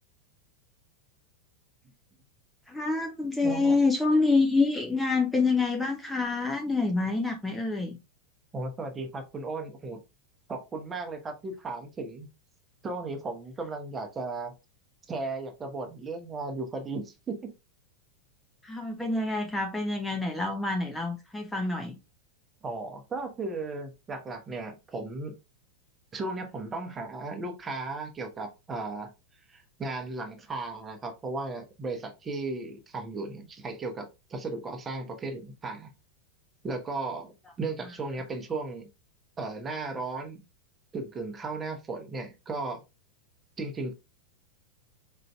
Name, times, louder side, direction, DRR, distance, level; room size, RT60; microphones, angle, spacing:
voice 1, 2.7-8.0 18.6-22.0, left 3 dB, 5° left, 0.6 m, -27 dB
voice 2, 3.4-3.8 8.5-10.0 10.5-12.3 12.8-14.5 15.1-17.5 22.6-25.3 26.1-29.1 29.5-35.9 36.6-38.9 39.4-40.4 40.9-42.8 43.6-43.9, right 3 dB, 20° right, 0.9 m, -35 dB
4.3 x 3.8 x 2.3 m
figure-of-eight pair, 90°, 0 cm